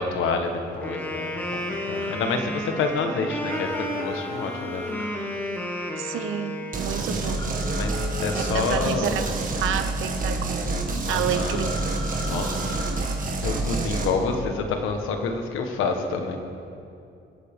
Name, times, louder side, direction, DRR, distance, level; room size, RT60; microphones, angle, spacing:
voice 1, 0.0-5.0 7.8-9.2 11.0-11.7 12.3-12.6 13.4-16.4, left 4 dB, 90° left, 5 dB, 1.4 m, -28 dB
Wind instrument woodwind instrument, 0.8-7.1, left 1 dB, 10° left, 2.3 m, -32 dB
sound 1, 1.9-2.1 3.4-5.1 7.3-8.7 11.4-13.0, left 2 dB, 25° left, 3.5 m, -38 dB
voice 2, 6.0-7.5 8.3-11.7 12.4-12.6, right 9 dB, 85° right, 9 dB, 0.9 m, -30 dB
sound 2, 6.7-14.1, right 2 dB, 45° right, 1.8 m, -28 dB
24.5 x 8.6 x 3.7 m, 2.6 s
cardioid pair, 90°, 20 cm